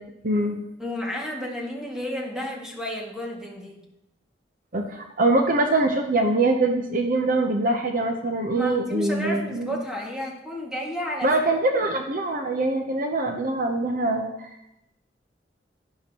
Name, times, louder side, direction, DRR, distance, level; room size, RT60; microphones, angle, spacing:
voice 1, 0.2-0.6 4.7-9.8 11.2-14.5, right 2 dB, 50° right, 4 dB, 0.8 m, -23 dB
voice 2, 0.8-3.8 8.5-11.3, equal, 5° right, -3 dB, 2.0 m, -32 dB
11.5 x 11.0 x 3.0 m, 0.85 s
head